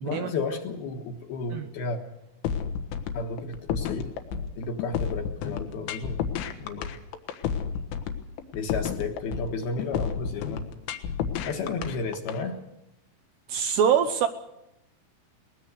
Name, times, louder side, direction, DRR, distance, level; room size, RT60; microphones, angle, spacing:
voice 1, 0.0-2.0 3.1-4.2 4.6-6.2 6.6-7.0 8.5-10.7 11.4-12.6, left 4 dB, 65° left, 3 dB, 2.9 m, -32 dB
sound 1, 2.4-12.4, left 7 dB, 85° left, 3.9 m, -31 dB
voice 2, 13.5-14.3, right 8 dB, 75° right, 8 dB, 2.6 m, -23 dB
23.5 x 20.0 x 6.6 m, 0.89 s
omnidirectional pair, 5.6 m